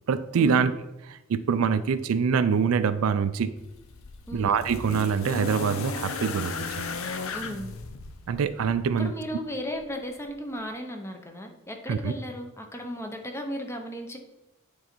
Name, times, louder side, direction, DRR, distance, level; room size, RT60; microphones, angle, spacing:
voice 1, 0.1-0.7 1.1-3.5 4.3-6.9 8.3-9.1 11.9-12.1, right 6 dB, 65° right, 13 dB, 0.4 m, -25 dB
sound 1, 3.6-8.8 9.9-10.0, left 4 dB, 65° left, 0.6 m, -35 dB
voice 2, 7.3-7.7 9.0-14.2, equal, 10° left, 4 dB, 0.7 m, -35 dB
8.8 x 3.9 x 4.4 m, 0.95 s
head